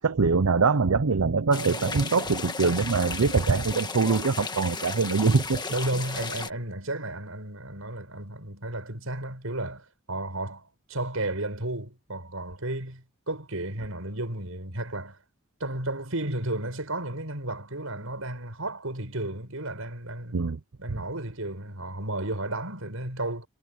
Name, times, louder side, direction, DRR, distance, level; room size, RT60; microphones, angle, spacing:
voice 1, 0.0-5.6 20.3-20.6 20.9-21.0, right 4 dB, 90° right, 0.7 m, -23 dB
sound 1, 1.5-6.5, left 4 dB, 20° left, 1.6 m, -34 dB
voice 2, 5.7-15.2 15.6-20.4 20.8-23.5, right 1 dB, 70° right, 6.5 m, -33 dB
head